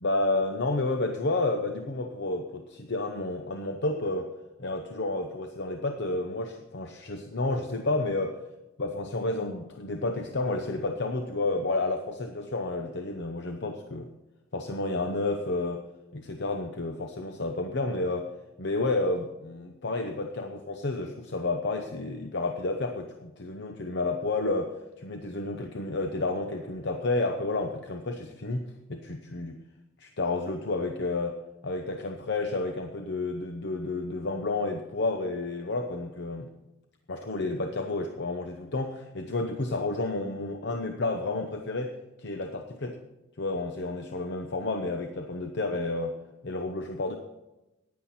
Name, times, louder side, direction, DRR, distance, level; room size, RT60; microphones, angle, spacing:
voice 1, 0.0-4.3 4.6-8.4 8.8-14.1 14.5-15.8 16.1-18.3 18.6-24.7 25.0-29.6 30.0-31.4 31.6-36.5 37.1-43.0 43.4-46.1 46.4-47.2, left 2 dB, 55° left, 5 dB, 0.9 m, -30 dB
15.0 x 10.5 x 4.3 m, 1.0 s
head